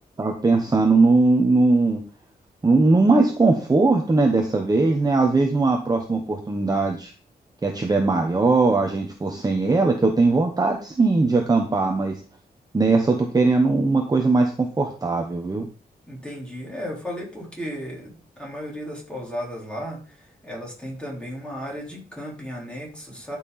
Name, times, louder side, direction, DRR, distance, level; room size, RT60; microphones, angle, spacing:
voice 1, 0.2-2.0 2.6-7.1 7.6-12.2 12.7-15.7, right 3 dB, 20° right, 2 dB, 1.0 m, -20 dB
voice 2, 16.1-23.4, equal, 5° left, -3 dB, 3.8 m, -35 dB
11.5 x 5.8 x 4.1 m, 0.39 s
wide cardioid pair, 165°, 17 cm